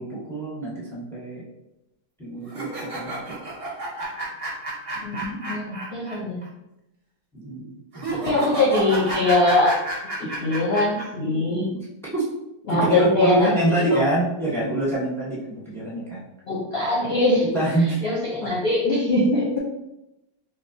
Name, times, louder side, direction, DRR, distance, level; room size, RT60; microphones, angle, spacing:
voice 1, 0.0-1.4 2.2-3.4 7.3-8.2 10.2-10.4 12.1-12.2 12.7-16.2 17.5-18.0 18.4-18.5, right 1 dB, ahead, -7 dB, 0.9 m, -26 dB
sound 1, 2.5-6.1 6.4-6.5 7.9-11.0, right 2 dB, 35° right, 0.5 m, -31 dB
voice 2, 5.0-6.4 8.2-9.8 10.2-11.7 12.7-13.6 13.9-14.0 16.5-17.5 17.8-19.6, left 2 dB, 45° left, -6 dB, 0.8 m, -22 dB
5.8 x 2.1 x 2.8 m, 0.88 s
omnidirectional pair, 2.0 m